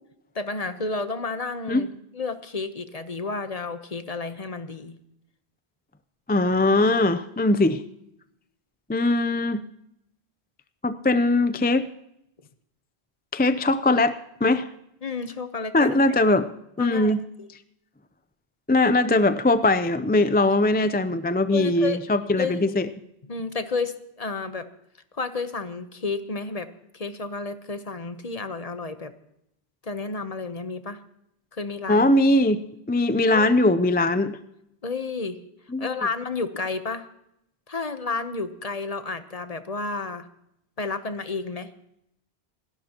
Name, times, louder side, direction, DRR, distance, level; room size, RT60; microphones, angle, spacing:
voice 1, 0.3-5.0 15.0-16.0 16.8-17.5 21.5-22.0 22.4-22.7 23.3-24.7 25.1-26.7 26.9-29.1 29.8-31.0 31.5-32.1 33.3-33.5 34.8-35.4 35.8-37.1 37.7-40.3 40.8-41.7, left 4 dB, 40° left, 10 dB, 1.0 m, -31 dB
voice 2, 6.3-7.8 8.9-9.6 10.8-11.9 13.3-14.7 15.7-16.5 16.8-17.2 18.7-22.9 31.9-34.4 35.7-35.9, left 2 dB, 15° left, 11 dB, 0.4 m, -21 dB
27.5 x 12.0 x 2.9 m, 0.78 s
omnidirectional pair, 1.1 m